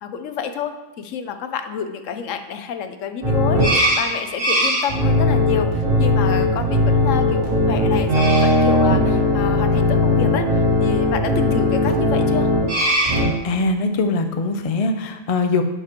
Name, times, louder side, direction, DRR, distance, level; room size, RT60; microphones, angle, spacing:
voice 1, 0.0-12.5, left 7 dB, 75° left, 8 dB, 1.0 m, -29 dB
sound 1, 3.2-13.3, left 1 dB, 70° right, 2.1 m, -18 dB
voice 2, 13.2-15.6, left 3 dB, 55° left, 6 dB, 0.4 m, -22 dB
10.5 x 5.0 x 3.0 m, 1.1 s
omnidirectional pair, 1.4 m